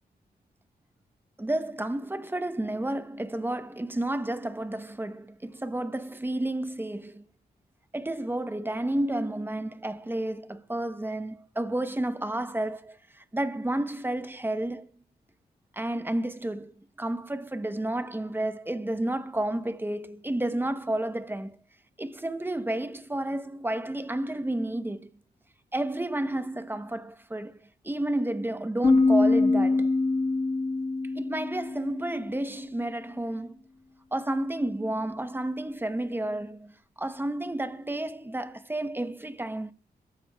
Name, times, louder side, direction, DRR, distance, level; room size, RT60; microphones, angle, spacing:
voice 1, 1.4-7.2 7.9-13.0 13.3-14.9 15.8-16.7 17.0-21.6 22.0-25.1 25.7-27.6 27.8-29.9 31.2-33.6 34.1-36.7 37.0-39.7, right 1 dB, 10° right, 0.8 m, -31 dB
sound 1, 28.8-32.4, left 3 dB, 35° left, 1.0 m, -24 dB
27.5 x 14.0 x 2.3 m
wide cardioid pair, 105°, 17 cm